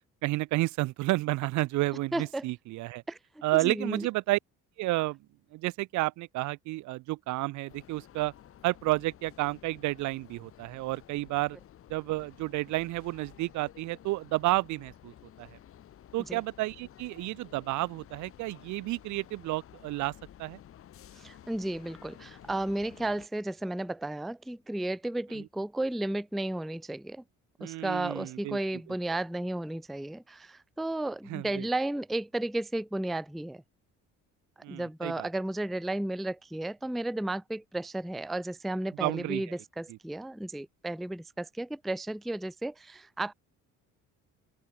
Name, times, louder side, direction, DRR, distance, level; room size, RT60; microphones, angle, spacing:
voice 1, 0.2-3.0 3.4-4.4 4.8-5.2 5.5-8.3 8.6-11.6 11.9-15.5 16.1-20.1 20.4-20.6 25.3-25.5 27.6-28.6 31.3-31.7 34.6-35.3 39.0-39.5 39.9-40.0, right 19 dB, 70° right, 0.7 m, -31 dB
voice 2, 2.1-2.4 3.1-3.2 3.5-4.1 16.3-16.4 21.2-27.2 27.6-33.6 34.7-43.3, right 1 dB, ahead, 0.3 m, -33 dB
sound 1, 7.7-23.3, left 11 dB, 45° left, 4.8 m, -53 dB
open air
cardioid pair, 160°, 31 cm